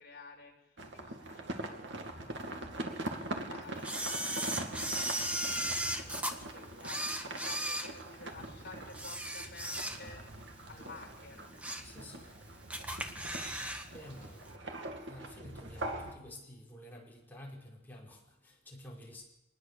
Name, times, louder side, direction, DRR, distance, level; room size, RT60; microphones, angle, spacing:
voice 1, 0.0-11.5, left 3 dB, 55° left, 1 dB, 5.4 m, -53 dB
sound 1, 0.8-16.2, right 1 dB, 70° right, 2.4 m, -43 dB
Camera, 3.8-6.3 6.8-8.5 8.9-10.3 10.7-10.8 11.3-11.9 12.3-12.4 12.7-13.9 14.1-14.2, right 1 dB, 5° right, 1.5 m, -36 dB
voice 2, 5.8-6.5 11.8-19.2, left 1 dB, 10° left, -4 dB, 5.6 m, -52 dB
24.0 x 20.0 x 7.0 m, 0.90 s
head